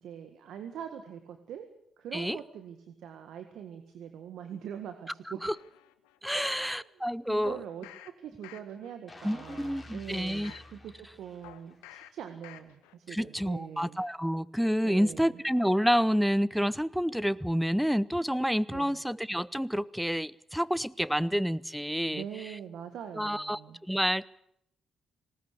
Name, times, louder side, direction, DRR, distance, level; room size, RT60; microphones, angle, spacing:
voice 1, 0.0-1.7 2.0-5.5 6.3-6.9 7.3-14.0 14.8-15.4 18.7-19.0 22.1-23.8, right 8 dB, 70° right, 7 dB, 1.7 m, -43 dB
sound 1, 5.4-6.7 7.4-8.1 8.4-8.9 9.4-10.7 11.4-12.1 12.4-12.9 13.3-13.4, left 14 dB, 85° left, 1.1 m, -52 dB
voice 2, 6.2-7.6 9.2-10.5 13.1-22.6 23.1-24.3, equal, ahead, 21 dB, 0.7 m, -29 dB
sound 2, 9.1-12.0 12.4-12.6, left 2 dB, 20° left, 3.8 m, -50 dB
19.5 x 18.5 x 8.3 m, 0.75 s
hypercardioid pair, 50°, 0 cm